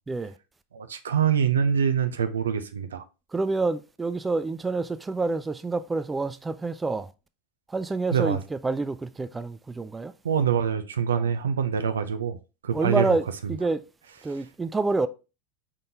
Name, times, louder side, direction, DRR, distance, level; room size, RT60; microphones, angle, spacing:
voice 1, 0.7-3.0 8.1-8.4 10.2-13.2, right 7 dB, 85° right, 0.4 m, -25 dB
voice 2, 3.3-7.1 7.7-10.1 11.1-11.3 12.7-13.8 14.2-15.1, right 3 dB, 15° right, 0.3 m, -28 dB
4.2 x 3.7 x 2.7 m
hypercardioid pair, 85°, 0 cm